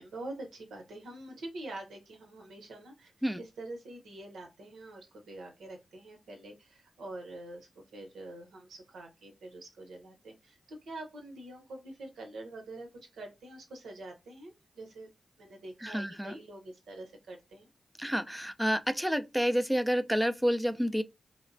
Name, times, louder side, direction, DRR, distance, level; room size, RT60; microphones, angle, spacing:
voice 1, 0.0-15.1 15.4-17.7, right 2 dB, 90° right, 0.7 m, -46 dB
voice 2, 15.8-16.4 18.0-21.0, equal, 5° right, 0.3 m, -29 dB
3.0 x 2.0 x 2.5 m
cardioid pair, 45°, 0 cm